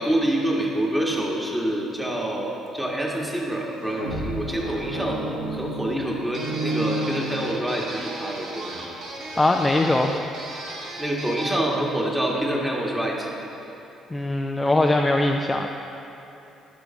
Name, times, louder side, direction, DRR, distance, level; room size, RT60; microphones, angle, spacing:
voice 1, 0.0-5.2 5.5-8.7 9.7-9.8 11.0-13.3, right 1 dB, 10° right, -2 dB, 1.5 m, -26 dB
sound 1, 3.7-7.9, right 1 dB, 90° right, 0.9 m, -31 dB
sound 2, 6.3-11.7, right 1 dB, 55° right, 1.1 m, -36 dB
voice 2, 9.4-10.2 14.1-15.7, left 2 dB, 15° left, 2 dB, 0.4 m, -21 dB
11.5 x 5.1 x 4.0 m, 2.9 s
figure-of-eight pair, 45°, 0 cm